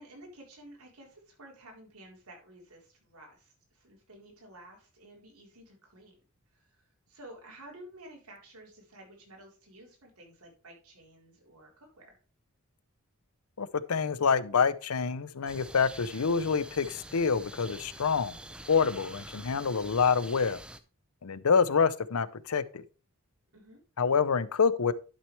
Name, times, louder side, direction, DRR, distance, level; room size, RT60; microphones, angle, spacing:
voice 1, 0.0-6.2 6.5-6.8 7.1-12.2 23.5-23.8, right 1 dB, 90° right, 4.0 m, -52 dB
voice 2, 13.6-18.4 18.7-20.6 21.2-22.8 24.0-24.9, left 5 dB, 80° left, 0.6 m, -27 dB
sound 1, 15.5-20.8, right 1 dB, 5° right, 0.5 m, -46 dB
11.5 x 6.2 x 3.2 m
head